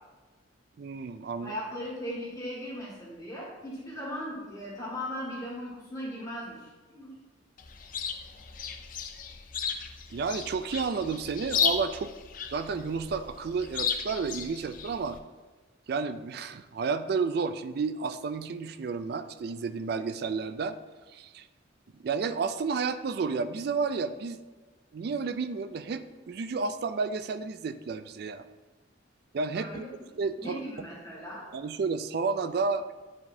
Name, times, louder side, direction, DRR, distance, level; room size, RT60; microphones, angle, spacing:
voice 1, 0.8-1.6 10.1-12.1 12.5-15.2 15.9-20.8 21.1-21.5 22.0-24.4 24.9-28.5 29.3-29.9 30.2-30.6 31.5-32.8, right 4 dB, 55° right, 11 dB, 0.3 m, -31 dB
voice 2, 1.4-7.1 29.5-29.9 30.4-31.5, equal, 20° left, -6 dB, 1.9 m, -38 dB
Chirp tweet, 7.6-15.2, left 7 dB, 45° left, 0.5 m, -34 dB
9.4 x 4.8 x 2.7 m, 1.3 s
head